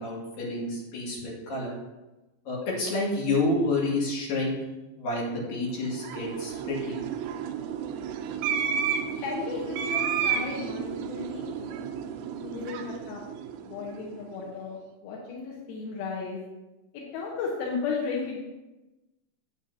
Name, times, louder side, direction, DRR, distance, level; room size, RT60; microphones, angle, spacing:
voice 1, 0.0-1.8 2.5-4.6 5.0-7.0, left 2 dB, 50° left, -5 dB, 3.4 m, -29 dB
sound 1, 5.7-14.2, right 7 dB, 80° right, 3.0 m, -32 dB
voice 2, 9.2-11.9 12.4-13.2 13.6-16.4 17.1-18.4, left 5 dB, 75° left, -3 dB, 2.3 m, -34 dB
11.5 x 8.1 x 2.8 m, 1.1 s
omnidirectional pair, 5.9 m